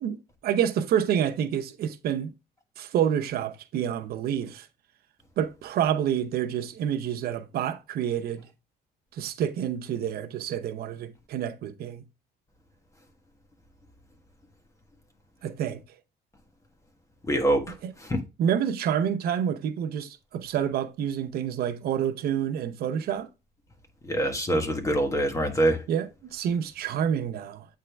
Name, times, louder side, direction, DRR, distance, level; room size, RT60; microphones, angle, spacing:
voice 1, 0.0-2.3 2.8-4.7 5.4-8.5 9.1-12.0 15.4-15.8 17.8-17.9 18.4-23.3 25.9-27.7, right 9 dB, 65° right, 0.8 m, -28 dB
voice 2, 17.3-18.2 24.0-25.8, right 1 dB, 20° left, 1.4 m, -25 dB
8.5 x 3.6 x 3.4 m
cardioid pair, 110°, 17 cm